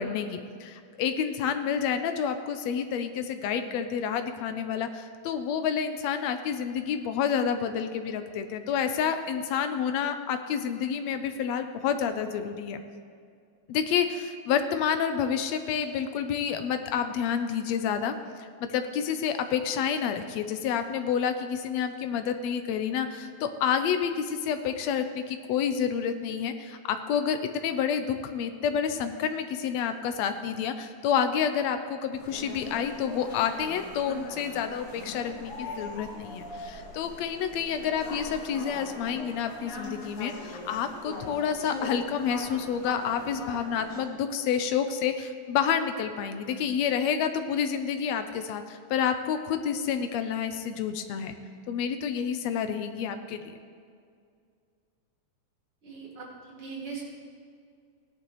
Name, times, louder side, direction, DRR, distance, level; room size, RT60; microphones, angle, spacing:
voice 1, 0.0-12.8 13.7-18.1 18.6-51.4 51.7-53.4, left 7 dB, 75° left, 8 dB, 1.7 m, -29 dB
sound 1, 32.1-44.0, left 2 dB, 55° left, 2.4 m, -41 dB
voice 2, 55.8-57.0, right 5 dB, 50° right, -5 dB, 3.2 m, -40 dB
17.0 x 11.0 x 3.1 m, 2.3 s
omnidirectional pair, 3.4 m